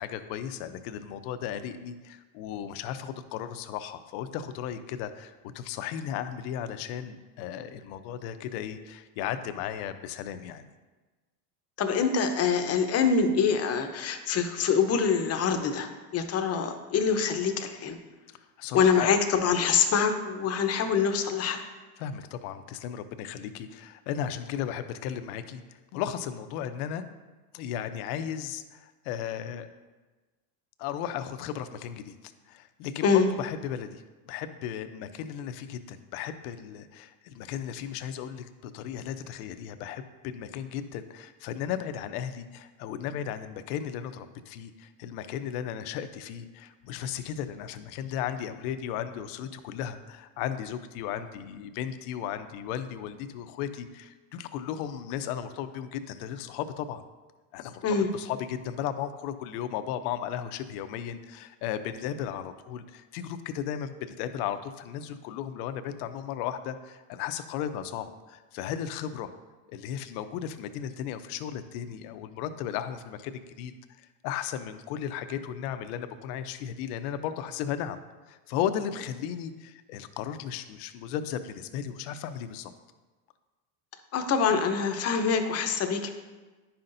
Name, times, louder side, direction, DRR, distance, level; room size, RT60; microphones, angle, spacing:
voice 1, 0.0-10.7 18.6-19.2 22.0-25.6 25.9-27.0 27.5-29.7 30.8-57.0 57.5-69.3 69.7-78.0 78.3-82.7, left 9 dB, 75° left, 10 dB, 0.7 m, -35 dB
voice 2, 11.8-18.0 18.7-21.6 33.0-33.3 57.8-58.1 84.1-86.1, left 6 dB, 35° left, 7 dB, 0.8 m, -25 dB
10.5 x 5.7 x 2.6 m, 1.2 s
supercardioid pair, 120°, 45 cm